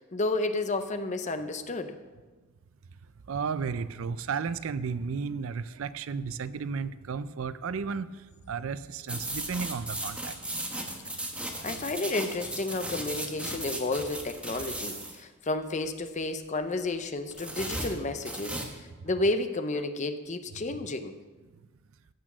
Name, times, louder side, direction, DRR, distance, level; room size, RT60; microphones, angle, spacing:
voice 1, 0.0-2.0 11.6-21.1, left 2 dB, 35° left, 9 dB, 0.7 m, -31 dB
voice 2, 3.3-8.1 8.5-10.6, right 5 dB, 65° right, 15 dB, 0.4 m, -33 dB
sound 1, 9.1-15.2 17.3-18.7, right 1 dB, 5° right, 1.2 m, -36 dB
15.0 x 6.1 x 6.1 m, 1.3 s
head